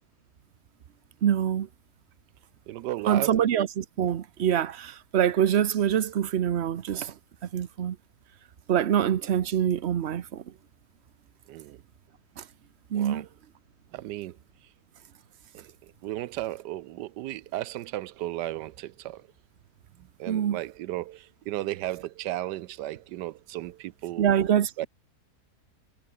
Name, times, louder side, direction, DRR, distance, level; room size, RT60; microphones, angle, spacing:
voice 1, 1.2-1.7 3.0-7.1 7.5-8.0 8.7-10.4 12.4-12.5 12.9-13.3 20.3-20.6 24.2-24.9, right 9 dB, 50° right, 0.9 m, -25 dB
voice 2, 2.7-3.4 11.5-11.8 12.9-13.3 13.9-14.4 15.5-15.7 16.0-19.2 20.2-24.3 24.8-24.9, right 15 dB, 90° right, 1.3 m, -34 dB
omnidirectional pair, 1.8 m